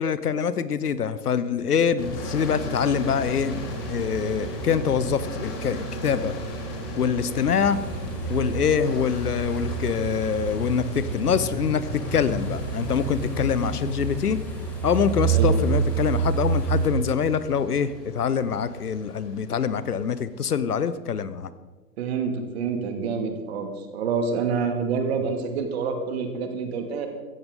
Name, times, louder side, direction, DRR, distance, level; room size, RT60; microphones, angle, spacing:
voice 1, 0.0-6.3 7.0-7.8 8.3-14.4 14.8-21.5, left 7 dB, 65° left, 15 dB, 1.0 m, -25 dB
sound 1, 2.0-20.6, right 1 dB, 35° left, 3.9 m, -36 dB
sound 2, 7.5-16.9, right 5 dB, 5° left, 2.5 m, -28 dB
voice 2, 22.0-27.1, right 5 dB, 40° right, 5 dB, 2.3 m, -27 dB
16.5 x 14.5 x 3.8 m, 1.3 s
figure-of-eight pair, 125°, 49 cm